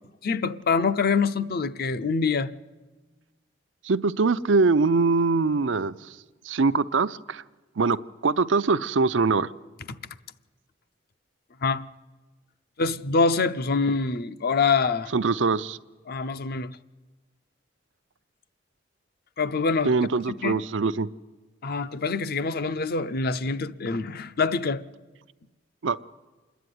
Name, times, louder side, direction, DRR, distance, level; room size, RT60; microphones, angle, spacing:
voice 1, 0.2-2.5 11.6-11.9 12.8-15.1 16.1-16.8 19.4-19.9 20.4-20.6 21.6-24.8, left 4 dB, 55° left, 0.7 m, -25 dB
voice 2, 3.8-5.9 6.4-7.4 7.8-8.0 8.2-9.5 15.1-15.8 19.8-21.1 25.8-26.0, right 4 dB, 90° right, 0.6 m, -23 dB
27.0 x 10.5 x 9.5 m
head